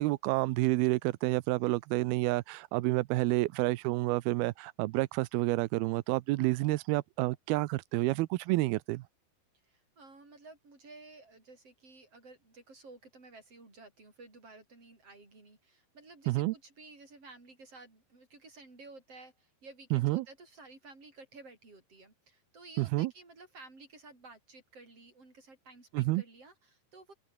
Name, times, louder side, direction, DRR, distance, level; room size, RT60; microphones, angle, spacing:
voice 1, 0.0-9.0 16.3-16.5 19.9-20.2 22.8-23.1 25.9-26.2, right 20 dB, 80° right, 2.2 m, -29 dB
voice 2, 9.6-27.1, right 3 dB, 30° right, 8.8 m, -54 dB
open air
omnidirectional pair, 5.1 m